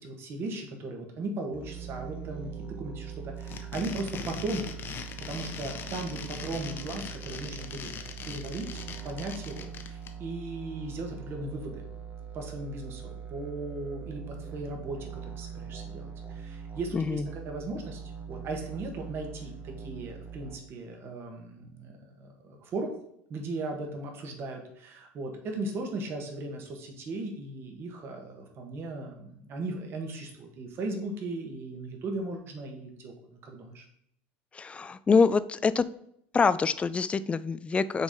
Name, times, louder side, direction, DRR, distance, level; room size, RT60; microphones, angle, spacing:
voice 1, 0.0-4.7 5.3-7.9 8.2-11.9 12.3-18.0 18.3-23.0 23.3-33.1 33.4-33.8, right 2 dB, 45° right, 2 dB, 1.5 m, -37 dB
sound 1, 1.5-20.6, right 7 dB, 25° right, 1.0 m, -42 dB
sound 2, 3.4-10.1, left 7 dB, 40° left, 0.7 m, -40 dB
voice 2, 16.9-17.2 34.5-35.9 36.3-38.0, left 5 dB, 20° left, 16 dB, 0.3 m, -25 dB
5.9 x 3.8 x 4.3 m, 0.73 s
supercardioid pair, 100°, 6 cm